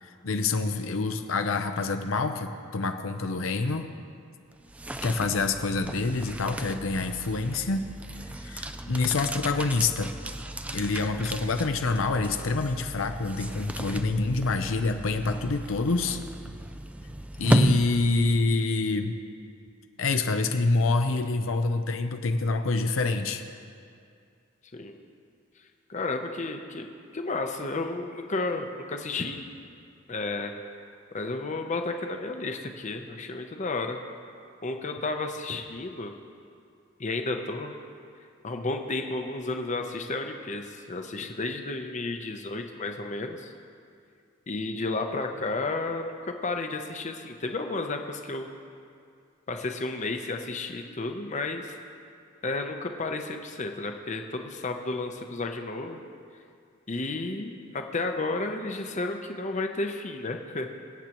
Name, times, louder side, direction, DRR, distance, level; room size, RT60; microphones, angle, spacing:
voice 1, 0.0-3.9 5.0-7.8 8.4-10.1 10.7-16.2 17.4-19.2 20.0-23.4, left 3 dB, 85° left, 7 dB, 0.6 m, -26 dB
sound 1, 4.5-18.6, right 1 dB, 5° right, 0.3 m, -34 dB
voice 2, 25.9-29.5 30.1-30.5 31.1-34.0 34.6-36.1 37.0-37.7 38.4-43.5 44.5-48.5 49.5-51.8 52.4-56.1 56.9-60.7, left 3 dB, 35° left, 5 dB, 0.7 m, -32 dB
24.0 x 8.3 x 3.0 m, 2.3 s
head